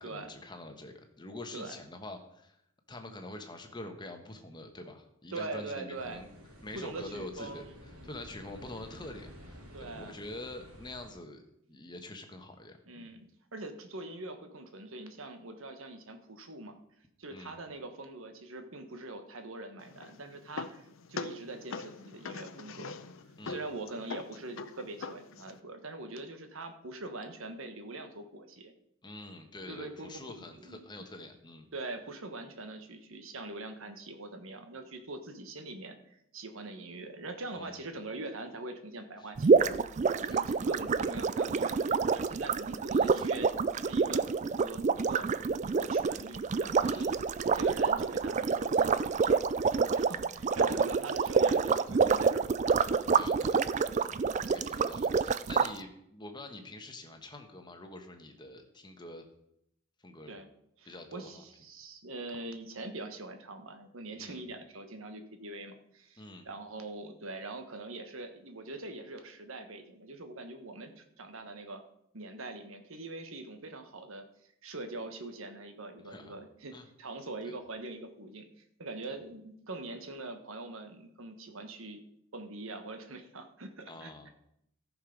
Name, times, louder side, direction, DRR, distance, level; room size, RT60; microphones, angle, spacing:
voice 1, 0.0-2.6 2.9-6.3 6.6-7.6 8.0-11.4 11.7-13.1 17.3-17.6 23.4-23.7 29.0-31.7 37.5-37.8 39.2-39.3 40.3-40.5 42.9-43.3 46.9-47.1 50.7-50.8 53.1-53.7 53.9-59.3 60.0-60.3 60.8-61.4 64.2-64.4 66.2-66.5 76.0-76.3 76.7-76.9 77.4-77.5 79.1-79.2 83.9-84.3, left 2 dB, 20° left, 5 dB, 1.2 m, -46 dB
voice 2, 5.3-6.2 6.7-7.7 9.7-10.2 12.9-16.8 17.2-23.0 23.4-28.7 29.7-30.9 31.7-39.7 40.3-45.3 45.7-47.1 47.5-49.5 49.9-52.5 54.1-54.5 60.3-60.5 60.8-71.8 72.1-74.3 74.6-78.5 78.8-82.0 82.3-84.3, right 2 dB, 65° right, 7 dB, 1.2 m, -43 dB
sound 1, 5.9-11.1, equal, 80° right, 3.0 m, -51 dB
sound 2, 19.8-25.6, left 4 dB, 65° left, 0.6 m, -43 dB
sound 3, 39.4-55.7, right 5 dB, 35° right, 0.3 m, -27 dB
14.0 x 6.5 x 5.2 m, 0.76 s
head